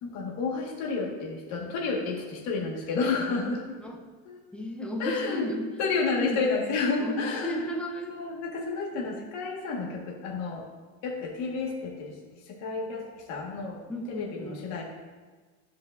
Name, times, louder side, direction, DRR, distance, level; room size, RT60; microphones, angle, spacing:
voice 1, 0.0-3.6 4.3-4.4 5.0-5.5 5.8-7.6 8.1-10.7 11.0-12.2 12.5-13.8 14.2-14.8, left 4 dB, 55° left, -2 dB, 1.8 m, -30 dB
voice 2, 3.6-4.1 4.5-5.9 6.2-6.4 7.0-8.2 13.9-14.6, left 1 dB, 5° left, 0 dB, 0.7 m, -34 dB
13.0 x 5.3 x 2.7 m, 1.3 s
cardioid pair, 160°, 33 cm